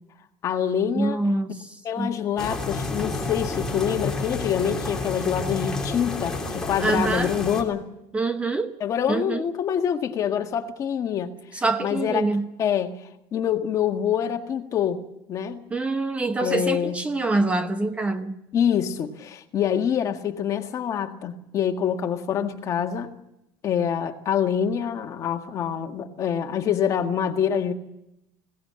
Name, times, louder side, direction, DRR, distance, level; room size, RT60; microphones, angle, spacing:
voice 1, 0.4-1.2 1.8-7.9 8.8-11.3 11.8-12.3 12.6-13.0 13.3-15.0 15.3-15.6 16.4-16.9 18.5-23.1 23.6-27.7, left 8 dB, 35° left, 5 dB, 1.8 m, -25 dB
voice 2, 0.9-2.1 6.8-7.3 8.1-8.7 9.1-9.5 11.5-12.5 15.7-18.4, right 2 dB, 15° right, 9 dB, 0.9 m, -25 dB
sound 1, 2.4-7.6, left 3 dB, 5° left, 3.3 m, -30 dB
21.0 x 17.5 x 8.8 m, 0.87 s
cardioid pair, 155°, 9 cm